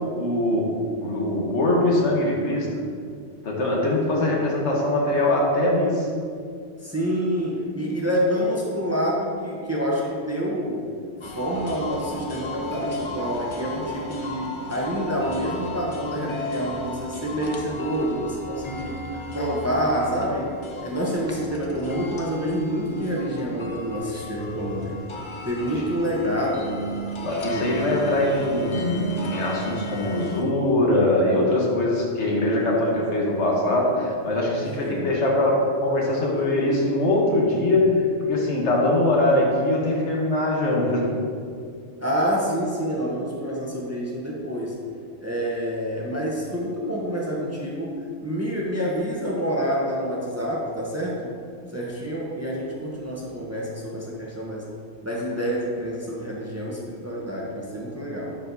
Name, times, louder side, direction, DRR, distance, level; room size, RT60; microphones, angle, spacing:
voice 1, 0.0-2.8 3.4-6.1 27.2-41.2, left 1 dB, 85° left, -2 dB, 1.4 m, -22 dB
voice 2, 6.8-10.9 11.2-19.0 19.3-25.0 25.4-26.8 27.4-28.3 34.8-35.2 42.0-44.7 45.2-51.3 51.7-54.7 55.0-58.4, equal, 15° right, -3 dB, 0.7 m, -27 dB
sound 1, 11.2-30.4, equal, 40° left, 0.5 m, -35 dB
10.5 x 4.5 x 2.7 m, 2.2 s
omnidirectional pair, 1.1 m